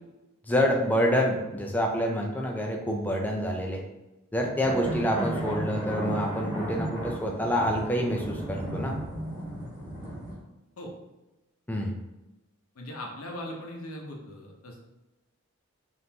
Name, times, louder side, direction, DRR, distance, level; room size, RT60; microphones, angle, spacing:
voice 1, 0.5-3.8 4.3-9.0 11.7-11.9, equal, 10° left, 0 dB, 0.4 m, -27 dB
sound 1, 4.6-10.3, right 1 dB, 10° right, 1.3 m, -34 dB
voice 2, 12.8-14.8, left 1 dB, 80° left, 0 dB, 0.7 m, -39 dB
3.6 x 2.5 x 2.8 m, 0.99 s
head